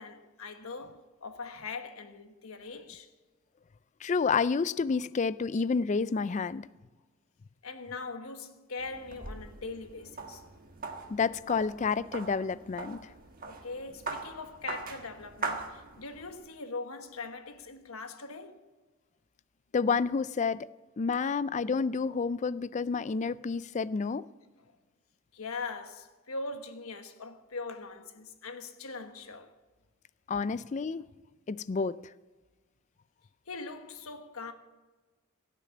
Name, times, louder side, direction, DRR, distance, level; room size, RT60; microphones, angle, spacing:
voice 1, 0.0-3.1 7.6-10.4 13.4-18.6 24.7-24.8 25.3-29.5 33.5-34.5, left 3 dB, 85° left, 1.3 m, -41 dB
voice 2, 4.0-6.7 11.1-13.0 19.7-20.7 21.0-24.3 30.3-31.1 31.5-32.0, left 5 dB, 35° left, 0.3 m, -29 dB
sound 1, 8.8-16.3, right 3 dB, 40° right, 1.4 m, -41 dB
17.0 x 6.7 x 8.7 m
head